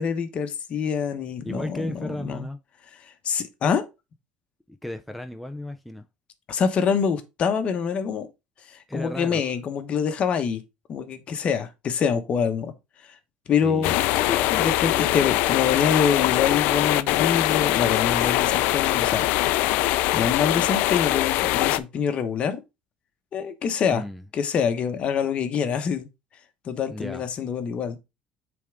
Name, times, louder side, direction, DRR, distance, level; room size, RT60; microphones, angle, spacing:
voice 1, 0.0-2.5 3.0-3.9 6.5-8.3 8.6-10.6 10.9-12.7 13.0-13.2 13.5-19.7 20.1-22.6 23.3-24.0 24.3-26.1 26.6-28.0, left 7 dB, 45° left, 1.0 m, -26 dB
voice 2, 1.4-2.6 4.7-6.1 8.9-9.4 13.6-14.0 23.9-24.2 26.9-27.2, left 1 dB, ahead, 0.4 m, -34 dB
sound 1, 13.8-21.8, left 16 dB, 80° left, 0.4 m, -22 dB
8.3 x 3.6 x 3.5 m
cardioid pair, 130°, 3 cm